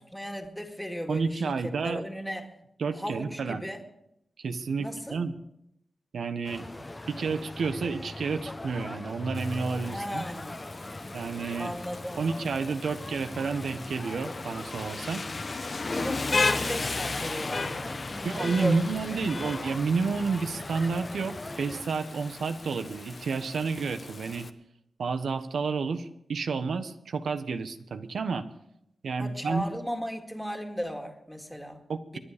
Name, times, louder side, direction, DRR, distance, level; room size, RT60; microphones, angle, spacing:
voice 1, 0.0-2.5 2.9-3.8 4.8-5.2 9.9-10.7 11.6-12.4 15.8-18.8 19.1-19.3 29.2-31.8 32.1-32.2, equal, 5° left, 4 dB, 2.1 m, -36 dB
voice 2, 1.1-2.0 2.8-3.7 4.4-5.3 6.1-6.6 7.1-10.3 11.1-11.7 12.2-15.2 18.2-24.5 25.0-28.5 29.0-29.6 31.9-32.2, right 4 dB, 90° right, 9 dB, 1.1 m, -30 dB
sound 1, 6.4-21.8, left 2 dB, 25° left, 1.0 m, -41 dB
Rain, 9.3-24.5, left 3 dB, 45° left, 1.0 m, -35 dB
24.0 x 10.0 x 5.1 m, 0.80 s
wide cardioid pair, 85°, 0 cm